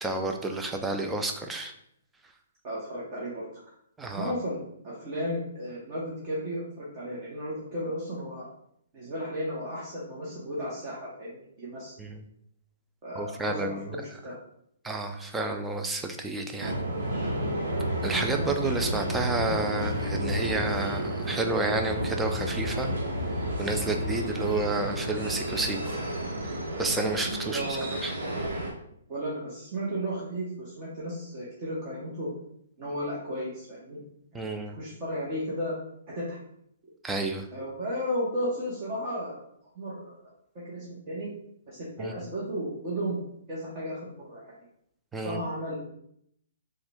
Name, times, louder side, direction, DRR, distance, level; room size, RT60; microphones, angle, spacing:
voice 1, 0.0-1.7 4.0-4.3 12.0-12.2 13.2-13.9 14.8-16.8 18.0-22.9 23.6-26.0 26.4-26.5 26.8-28.2 34.3-34.8 37.0-37.5 42.0-42.1 45.1-45.4, right 2 dB, 10° right, 4 dB, 0.4 m, -30 dB
voice 2, 2.6-3.5 4.1-8.5 8.9-11.9 13.0-14.3 27.5-27.9 29.1-32.3 32.8-34.0 34.5-35.7 36.1-36.4 37.5-39.4 39.7-40.2 40.6-41.3 41.7-44.6 45.2-45.9, equal, 35° right, -7 dB, 1.0 m, -34 dB
sound 1, 16.6-28.7, right 1 dB, 75° right, 1.0 m, -31 dB
3.5 x 2.2 x 3.5 m, 0.73 s
hypercardioid pair, 140°, 0 cm